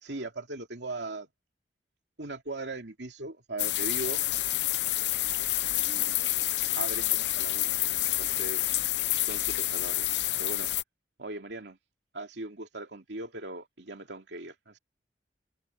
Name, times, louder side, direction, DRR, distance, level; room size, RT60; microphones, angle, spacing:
voice 1, 0.0-1.3 2.2-4.2 5.8-6.4 6.8-8.7 9.2-10.1 10.4-10.7 11.2-11.8 12.1-14.8, right 2 dB, 90° right, 2.6 m, -39 dB
sound 1, 3.6-10.8, left 15 dB, 80° left, 0.8 m, -28 dB
head